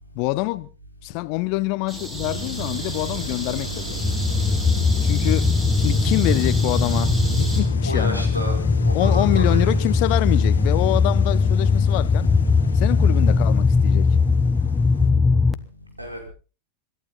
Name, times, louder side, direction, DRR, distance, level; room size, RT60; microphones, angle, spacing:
voice 1, 0.1-0.7 1.0-4.0 5.0-5.5 5.8-8.2 8.6-8.7 8.9-12.3 12.7-14.2, left 22 dB, 45° left, 0.8 m, -25 dB
sound 1, 1.9-7.6, right 4 dB, 15° right, 5.7 m, -30 dB
sound 2, 2.2-15.1, left 6 dB, 70° left, 2.0 m, -39 dB
sound 3, 3.9-15.5, left 4 dB, 10° left, 1.1 m, -20 dB
voice 2, 7.8-8.5 8.8-9.7 16.0-16.3, equal, 85° right, 5.1 m, -30 dB
26.0 x 12.0 x 4.0 m
figure-of-eight pair, 90°, 0 cm